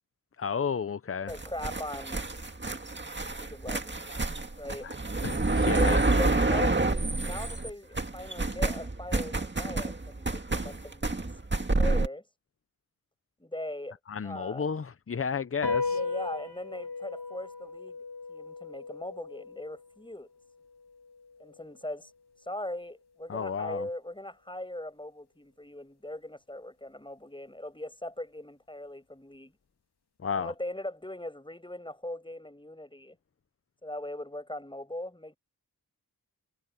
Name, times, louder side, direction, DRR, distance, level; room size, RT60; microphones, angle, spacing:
voice 1, 0.4-1.3 4.8-4.9 5.2-6.0 14.1-16.0 23.3-23.9 30.2-30.5, left 6 dB, 35° left, 0.6 m, -32 dB
voice 2, 1.3-2.2 3.4-4.1 4.6-4.9 5.7-11.3 11.8-12.3 13.4-14.7 15.9-18.0 18.3-20.3 21.4-22.1 22.4-29.5 30.3-33.2 33.8-35.4, left 1 dB, 10° left, 7.3 m, -40 dB
sound 1, 1.3-7.7 7.9-12.1, right 2 dB, 30° right, 1.9 m, -28 dB
sound 2, 15.6-22.3, left 4 dB, 80° left, 2.9 m, -37 dB
wide cardioid pair, 90°, 39 cm